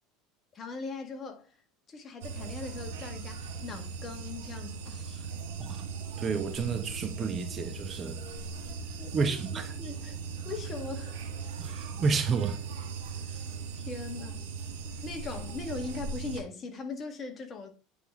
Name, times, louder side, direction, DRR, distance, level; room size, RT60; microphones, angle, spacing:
voice 1, 0.5-1.6 1.9-5.3 8.9-10.2 10.4-11.3 13.2-13.5 13.7-14.5 15.0-17.7, left 4 dB, 30° left, 1.5 m, -40 dB
Night nature at Klong Nin Koh Lanta Thailand, 2.2-16.4, right 5 dB, 90° right, 1.4 m, -39 dB
voice 2, 6.2-8.2 9.1-9.7 11.6-12.6, right 5 dB, 30° right, 0.8 m, -30 dB
9.0 x 3.7 x 3.6 m
supercardioid pair, 115°, 0 cm